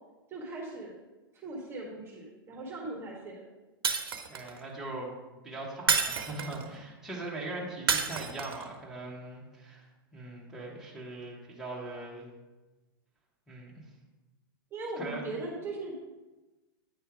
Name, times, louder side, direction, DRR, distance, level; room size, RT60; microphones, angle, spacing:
voice 1, 0.3-1.0 1.3-3.4 14.7-16.0, right 2 dB, 20° right, -2 dB, 1.4 m, -39 dB
Shatter, 3.8-4.6 5.9-6.7 7.9-8.7, right 6 dB, 75° right, 0.8 m, -29 dB
voice 2, 4.3-5.2 5.4-9.9 10.1-12.3 13.5-13.7 15.0-15.3, right 2 dB, 5° right, -5 dB, 1.6 m, -40 dB
9.1 x 3.3 x 4.8 m, 1.1 s
hypercardioid pair, 110°, 12 cm